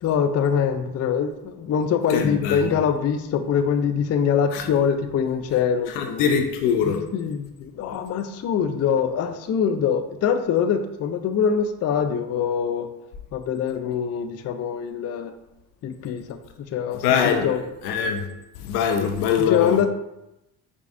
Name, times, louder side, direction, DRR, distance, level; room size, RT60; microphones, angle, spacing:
voice 1, 0.0-6.4 6.8-12.9 13.3-15.3 15.8-16.4 16.7-17.6 19.0-19.1 19.5-19.9, left 7 dB, 35° left, 8 dB, 0.4 m, -24 dB
voice 2, 2.1-2.8 4.5-4.6 6.0-7.0 17.0-17.5 17.8-18.2 18.6-19.9, left 7 dB, 90° left, 5 dB, 0.6 m, -23 dB
4.9 x 3.3 x 2.6 m, 0.89 s
hypercardioid pair, 60°, 48 cm